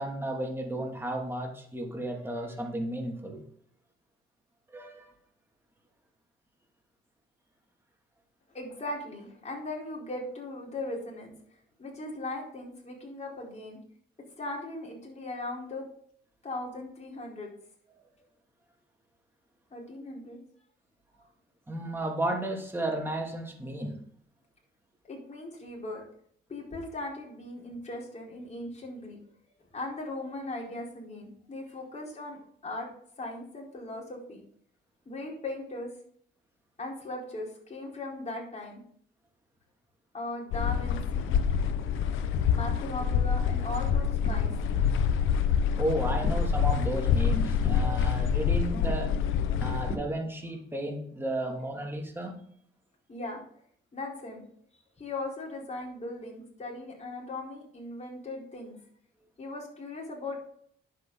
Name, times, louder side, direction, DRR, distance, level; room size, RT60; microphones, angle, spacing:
voice 1, 0.0-3.4 4.7-5.1 21.7-24.0 45.8-49.1 49.6-52.4, right 1 dB, 10° right, 1 dB, 2.8 m, -33 dB
voice 2, 8.5-11.3 11.8-13.8 14.4-15.8 16.4-17.5 19.7-20.4 25.1-26.0 26.5-29.2 29.7-32.4 32.6-32.9 33.2-34.4 35.1-35.9 36.8-38.8 40.1-41.7 42.0-42.1 42.5-44.5 44.8-44.9 53.1-53.4 53.9-54.4 55.0-58.8 59.4-60.4, left 2 dB, 35° left, -2 dB, 4.4 m, -38 dB
sound 1, 40.5-50.0, left 7 dB, 85° left, 0.9 m, -26 dB
sound 2, 41.9-50.2, right 3 dB, 30° right, 2.0 m, -47 dB
10.0 x 8.1 x 4.0 m, 0.63 s
cardioid pair, 90°, 20 cm